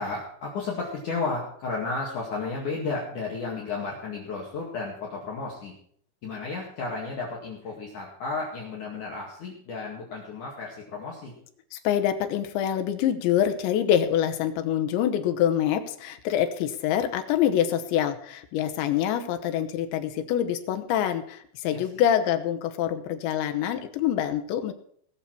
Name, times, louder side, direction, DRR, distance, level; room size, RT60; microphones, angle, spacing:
voice 1, 0.0-5.7 6.2-11.3 21.7-22.0, left 3 dB, 50° left, -3 dB, 2.9 m, -33 dB
voice 2, 11.7-24.7, left 10 dB, 80° left, 7 dB, 3.2 m, -25 dB
19.0 x 6.9 x 6.0 m, 0.63 s
omnidirectional pair, 5.5 m